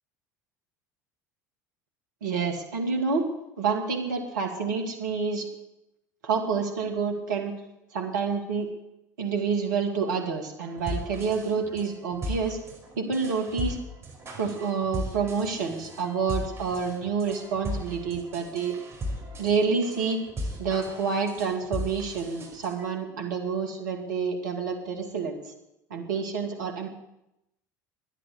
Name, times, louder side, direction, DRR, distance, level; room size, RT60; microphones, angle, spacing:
voice 1, 2.2-3.3 3.6-5.5 6.2-7.5 7.9-8.7 9.2-12.6 13.0-13.8 14.4-18.7 19.4-20.2 20.6-25.4 25.9-26.9, right 5 dB, 75° right, 2 dB, 2.4 m, -28 dB
sound 1, 10.6-22.9, equal, 25° right, 5.6 m, -37 dB
12.0 x 10.5 x 8.0 m, 0.87 s
hypercardioid pair, 70°, 10 cm